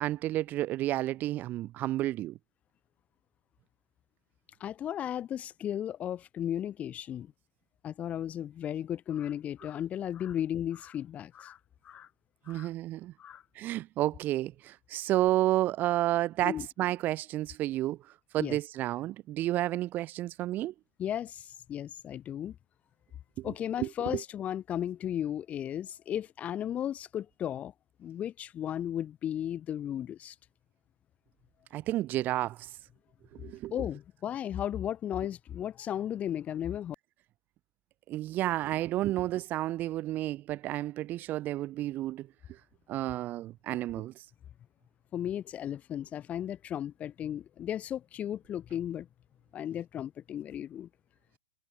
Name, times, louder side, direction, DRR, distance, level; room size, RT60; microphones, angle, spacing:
voice 1, 0.0-2.3 12.5-13.1 13.6-16.5 16.8-18.0 18.3-20.7 23.4-23.5 23.8-24.2 31.7-32.7 33.4-33.7 38.1-42.3 42.9-44.1, right 15 dB, 20° right, 2.8 m, -31 dB
voice 2, 4.6-7.3 7.8-11.6 11.8-12.1 12.5-12.7 13.2-13.4 16.4-16.7 18.4-18.6 21.0-22.6 23.4-27.7 28.0-30.4 33.7-37.0 44.0-44.1 45.1-49.1 49.5-50.9, left 10 dB, 15° left, 3.9 m, -35 dB
hypercardioid pair, 165°, 9 cm